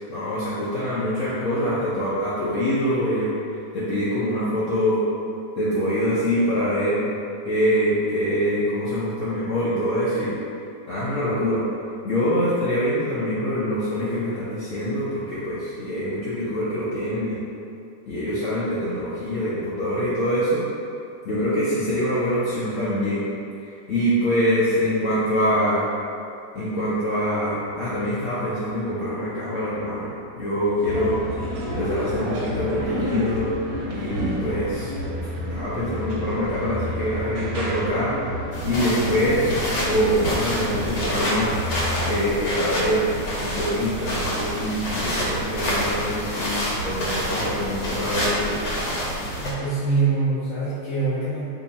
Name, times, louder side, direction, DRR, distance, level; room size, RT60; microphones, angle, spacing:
voice 1, 0.1-3.3 3.7-5.0 5.6-7.1 7.4-10.4 10.9-11.6 12.0-17.4 18.1-20.6 21.2-23.2 23.6-25.8 26.5-31.2 31.7-33.5 33.9-34.9 35.5-38.2 38.6-39.5 39.8-41.5 42.1-43.1 43.4-46.6 46.8-48.5, equal, 65° left, -10 dB, 0.8 m, -24 dB
sound 1, 30.8-42.2, left 1 dB, 65° right, 1.0 m, -30 dB
sound 2, 38.5-49.5, equal, 85° left, 1.4 m, -27 dB
voice 2, 49.4-51.4, right 3 dB, 5° left, -12 dB, 0.6 m, -24 dB
2.7 x 2.7 x 4.0 m, 2.6 s
omnidirectional pair, 1.8 m